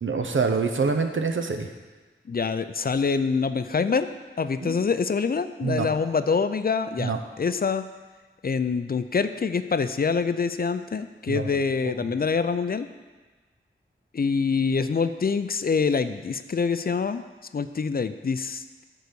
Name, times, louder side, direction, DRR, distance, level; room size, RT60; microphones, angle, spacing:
voice 1, 0.0-1.7 4.6-4.7 5.6-5.9 7.0-7.2 11.3-11.5 11.8-12.1, right 4 dB, 70° right, 5 dB, 0.8 m, -26 dB
voice 2, 2.3-4.1 4.4-7.9 8.4-12.9 14.1-17.2 17.5-18.8, left 5 dB, 45° left, 11 dB, 0.4 m, -25 dB
9.3 x 4.0 x 6.8 m, 1.3 s
wide cardioid pair, 55°, 21 cm